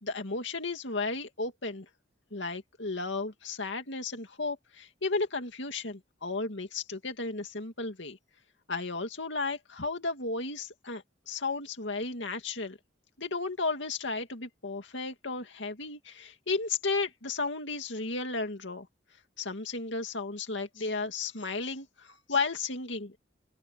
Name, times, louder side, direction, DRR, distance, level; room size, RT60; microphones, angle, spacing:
voice 1, 0.0-1.9 2.3-8.2 8.7-12.8 13.2-18.9 19.4-23.2, left 3 dB, 80° left, 2.3 m, -34 dB
open air
head